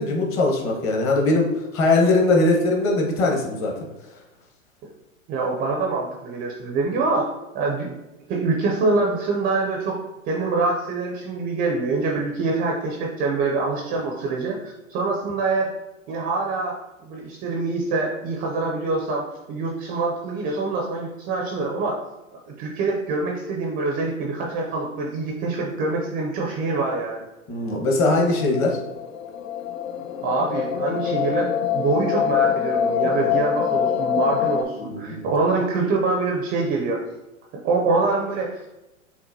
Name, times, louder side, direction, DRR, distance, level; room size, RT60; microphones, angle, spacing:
voice 1, 0.0-1.5 1.7-3.7 27.5-28.8 34.8-35.3, left 2 dB, 30° left, 0 dB, 1.0 m, -20 dB
voice 2, 5.3-7.9 8.3-10.0 10.3-15.7 16.1-16.7 17.0-22.0 22.6-27.2 30.2-37.0 37.6-38.6, right 3 dB, 25° right, 0 dB, 0.4 m, -25 dB
sound 1, 28.2-34.6, left 8 dB, 75° left, 0.5 m, -24 dB
5.8 x 2.1 x 2.6 m, 0.99 s
hypercardioid pair, 110°, 40 cm